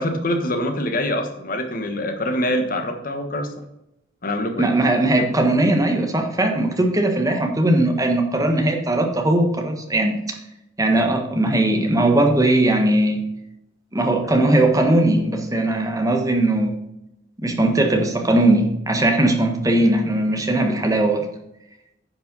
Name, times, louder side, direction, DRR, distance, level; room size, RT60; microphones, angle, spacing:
voice 1, 0.0-3.5 4.2-4.7, left 1 dB, 50° left, 6 dB, 1.3 m, -24 dB
voice 2, 4.6-10.2 10.8-13.2 13.9-16.7 17.4-21.3, right 1 dB, 20° right, 3 dB, 1.3 m, -19 dB
10.0 x 5.5 x 5.3 m, 0.84 s
head